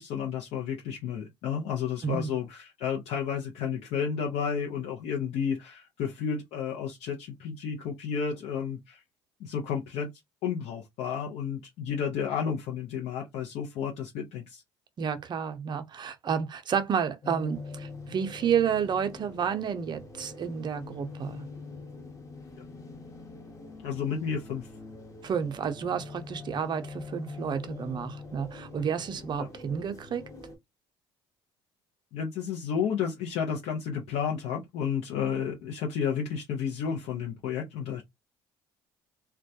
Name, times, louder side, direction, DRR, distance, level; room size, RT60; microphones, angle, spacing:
voice 1, 0.0-9.0 9.4-10.1 10.4-14.6 22.6-22.7 23.8-24.7 29.4-29.5 32.1-38.0, left 7 dB, 70° left, 0.6 m, -32 dB
voice 2, 15.0-21.4 25.2-30.2, right 7 dB, 40° right, 0.5 m, -30 dB
sound 1, 17.2-30.6, left 3 dB, 30° left, 0.9 m, -44 dB
2.2 x 2.1 x 2.7 m
supercardioid pair, 70°, 11 cm